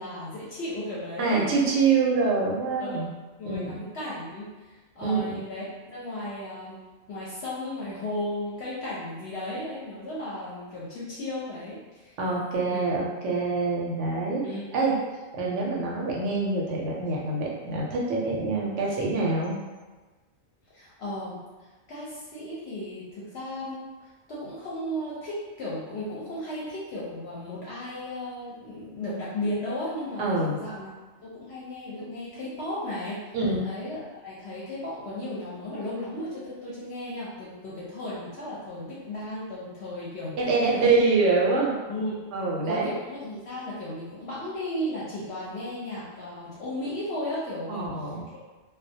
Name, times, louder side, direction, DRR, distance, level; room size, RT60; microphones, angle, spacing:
voice 1, 0.0-1.8 2.8-3.1 3.4-12.1 12.7-12.8 14.4-14.7 20.7-21.4 21.9-30.9 31.2-33.2 33.6-40.9 41.9-42.2 42.6-48.1, left 1 dB, 65° left, -8 dB, 0.7 m, -35 dB
voice 2, 1.2-3.1 3.4-3.8 5.0-5.4 12.2-14.4 14.7-14.9 15.3-19.5 30.2-30.8 33.3-33.6 40.4-41.7 42.3-42.9 47.7-48.2, right 3 dB, 70° right, -3 dB, 0.8 m, -25 dB
2.2 x 2.1 x 2.6 m, 1.3 s
omnidirectional pair, 1.4 m